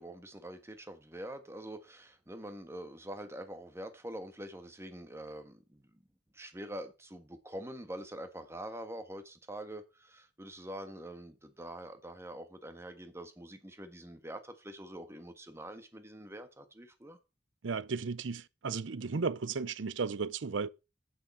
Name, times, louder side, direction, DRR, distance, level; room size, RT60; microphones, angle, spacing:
voice 1, 0.0-5.8 6.3-17.2, right 1 dB, 15° right, 1.5 m, -45 dB
voice 2, 17.6-20.7, right 4 dB, 80° right, 0.6 m, -34 dB
8.8 x 7.5 x 5.5 m
head